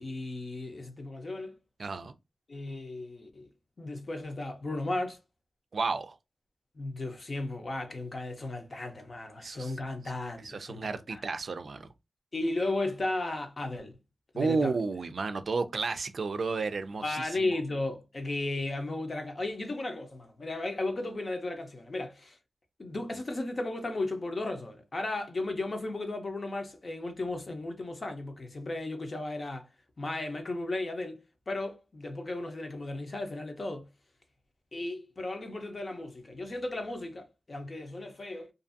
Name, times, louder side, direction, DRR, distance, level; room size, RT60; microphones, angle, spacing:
voice 1, 0.0-1.6 2.5-3.5 3.8-5.2 6.8-11.2 12.3-13.9 14.3-14.7 17.0-22.4 22.8-29.7 30.0-31.2 31.5-33.9 34.7-38.5, left 2 dB, 45° left, 0.7 m, -35 dB
voice 2, 1.8-2.1 5.7-6.2 9.4-9.7 10.4-11.9 14.4-17.5, right 4 dB, 65° right, 0.3 m, -32 dB
2.6 x 2.5 x 2.5 m
wide cardioid pair, 85°, 0 cm